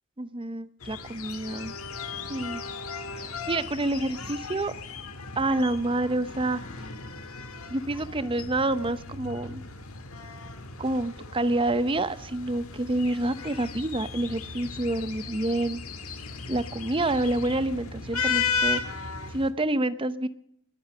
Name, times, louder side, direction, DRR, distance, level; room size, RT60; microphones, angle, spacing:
voice 1, 0.2-1.7 2.3-2.6 3.2-4.7 5.4-6.6 7.7-9.6 10.8-15.8 16.5-18.8 19.3-20.3, right 2 dB, 25° right, 14 dB, 0.7 m, -28 dB
sound 1, 0.8-19.5, left 5 dB, 90° left, 1.7 m, -35 dB
21.5 x 8.8 x 6.6 m, 0.71 s
head